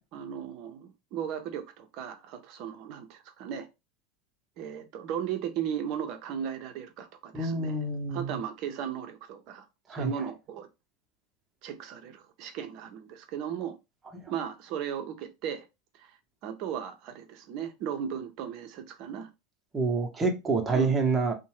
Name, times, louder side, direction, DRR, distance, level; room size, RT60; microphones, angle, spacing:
voice 1, 0.1-3.7 4.6-7.8 8.1-10.7 11.6-13.8 14.3-15.7 16.0-16.2 16.4-19.3 20.7-21.0, right 8 dB, 55° right, 0.6 m, -36 dB
voice 2, 7.3-8.4 9.9-10.1 14.1-14.2 19.7-21.3, right 3 dB, 20° right, 0.8 m, -27 dB
2.6 x 2.1 x 3.1 m
hypercardioid pair, 100°, 0 cm